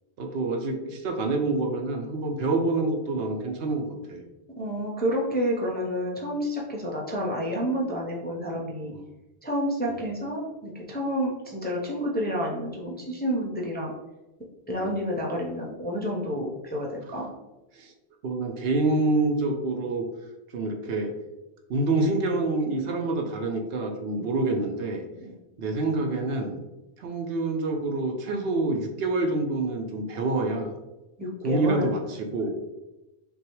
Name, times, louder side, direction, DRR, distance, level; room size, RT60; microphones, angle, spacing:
voice 1, 0.2-4.2 8.9-9.0 9.9-10.0 14.8-14.9 17.7-17.9 18.2-20.0 20.5-21.1 21.7-25.0 25.6-26.6 27.0-30.7 31.4-32.5, right 2 dB, 70° right, 3 dB, 0.8 m, -27 dB
voice 2, 4.6-8.9 9.4-13.9 14.7-17.3 24.1-24.3 25.2-25.3 31.2-31.9, equal, 10° left, -3 dB, 0.5 m, -29 dB
6.1 x 2.3 x 3.0 m, 1.0 s
omnidirectional pair, 1.1 m